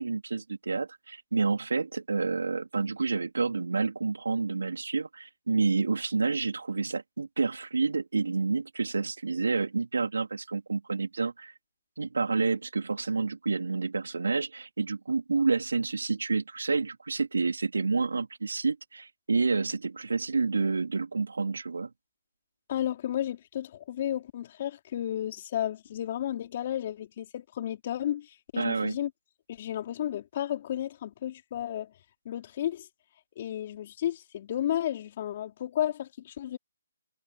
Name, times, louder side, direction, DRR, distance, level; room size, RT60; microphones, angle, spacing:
voice 1, 0.0-11.5 12.0-21.9 28.5-29.0, right 4 dB, 85° right, 3.4 m, -29 dB
voice 2, 22.7-28.3 28.5-29.1 29.5-31.9 32.2-32.9 33.4-36.6, left 11 dB, 40° left, 4.6 m, -32 dB
hypercardioid pair, 155°, 0 cm